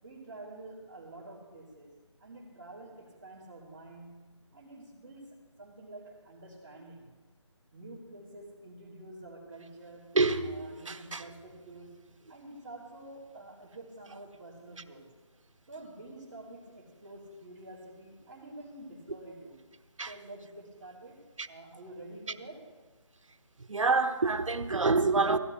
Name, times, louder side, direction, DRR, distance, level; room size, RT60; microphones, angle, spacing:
voice 1, 0.0-1.9 2.2-7.1 7.7-10.2 10.5-15.0 15.7-19.6 20.0-22.7, right 2 dB, 25° right, 3.3 m, -48 dB
voice 2, 10.1-11.3 20.0-20.2 21.4-21.5 23.7-25.4, right 3 dB, 85° right, 1.0 m, -27 dB
17.5 x 16.0 x 3.3 m
figure-of-eight pair, 170°, 16 cm